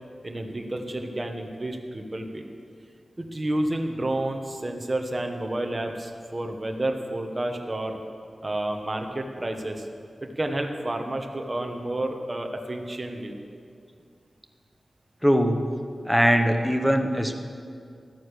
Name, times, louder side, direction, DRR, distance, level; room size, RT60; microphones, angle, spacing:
voice 1, 0.2-2.5 3.2-8.0 8.4-9.9 10.2-13.4, right 1 dB, 25° right, 3 dB, 1.2 m, -30 dB
voice 2, 15.2-15.8 16.0-17.3, equal, ahead, 5 dB, 0.9 m, -21 dB
13.5 x 9.5 x 6.8 m, 2.3 s
wide cardioid pair, 125°, 0 cm